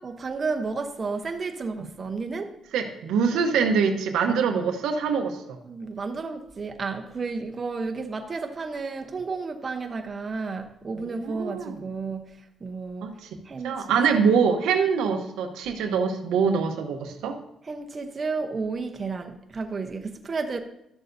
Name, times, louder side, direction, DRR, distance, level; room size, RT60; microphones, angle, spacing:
voice 1, 0.0-2.6 5.6-12.3 12.6-13.1 13.4-13.9 17.6-20.6, right 4 dB, 35° right, 0.8 m, -32 dB
voice 2, 2.7-5.6 11.0-11.8 13.0-13.3 13.6-17.4, right 6 dB, 90° right, 0.9 m, -24 dB
12.5 x 6.7 x 2.6 m
cardioid pair, 90°, 0 cm